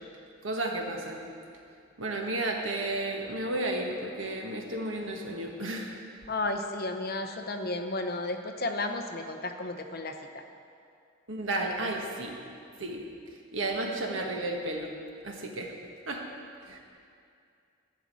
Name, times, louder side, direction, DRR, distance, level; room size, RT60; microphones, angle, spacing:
voice 1, 0.4-1.3 2.0-5.9 11.3-12.4 12.8-13.0 13.5-14.9 15.2-15.7 16.1-16.2 16.7-16.8, right 2 dB, 80° right, 1 dB, 1.6 m, -32 dB
voice 2, 6.3-10.2, left 2 dB, 50° left, 5 dB, 0.9 m, -33 dB
12.5 x 6.3 x 8.4 m, 2.4 s
head